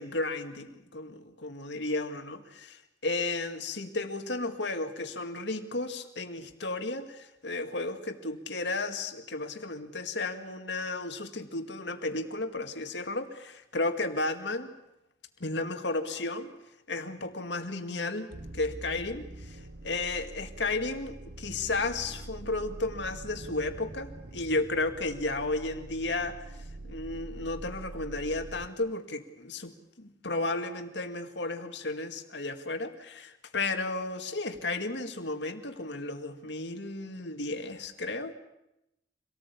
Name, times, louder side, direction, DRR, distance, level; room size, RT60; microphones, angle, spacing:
voice 1, 0.0-14.7 15.4-16.5 16.9-26.4 26.8-29.7 30.0-38.3, left 2 dB, 70° left, 6 dB, 2.2 m, -33 dB
sound 1, 18.3-28.7, right 2 dB, 55° right, 1.1 m, -44 dB
25.5 x 18.5 x 8.5 m, 0.87 s
head